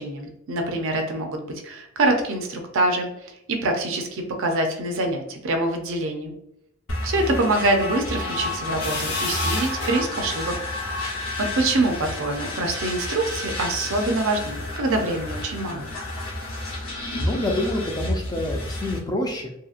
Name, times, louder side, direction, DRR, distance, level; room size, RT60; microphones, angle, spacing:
voice 1, 0.0-6.3 7.0-10.6 11.1-15.9, right 2 dB, 60° right, 4 dB, 0.5 m, -25 dB
sound 1, 6.9-19.0, left 1 dB, 65° left, 0.8 m, -31 dB
sound 2, 8.8-17.9, left 3 dB, 50° left, 1.0 m, -35 dB
voice 2, 17.2-19.5, left 1 dB, 15° left, 2 dB, 0.3 m, -27 dB
2.8 x 2.7 x 2.4 m, 0.81 s
head